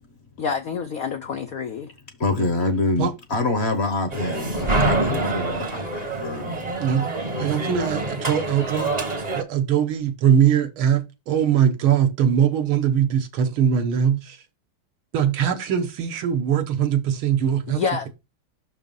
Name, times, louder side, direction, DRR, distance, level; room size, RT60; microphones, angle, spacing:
voice 1, 0.4-1.9 17.7-18.1, left 6 dB, 75° left, 0.8 m, -27 dB
voice 2, 2.2-6.7, left 2 dB, 45° left, 0.9 m, -25 dB
sound 1, 4.1-9.4, right 2 dB, 30° right, 0.8 m, -26 dB
voice 3, 7.4-8.9 9.3-14.4 15.1-17.8, right 8 dB, 75° right, 1.8 m, -21 dB
6.1 x 4.5 x 5.3 m
omnidirectional pair, 2.3 m